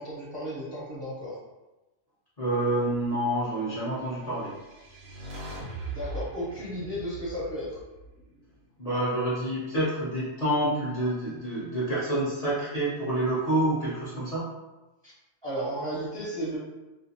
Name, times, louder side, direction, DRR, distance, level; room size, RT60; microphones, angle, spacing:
voice 1, 0.0-1.4 5.9-7.8 15.0-15.1 15.4-16.6, equal, 30° right, -9 dB, 0.6 m, -34 dB
voice 2, 2.4-4.5 8.8-14.4, right 1 dB, 35° left, -10 dB, 0.7 m, -28 dB
sound 1, 4.2-8.5, right 2 dB, 60° right, 0.8 m, -40 dB
2.5 x 2.4 x 2.7 m, 1.1 s
omnidirectional pair, 1.4 m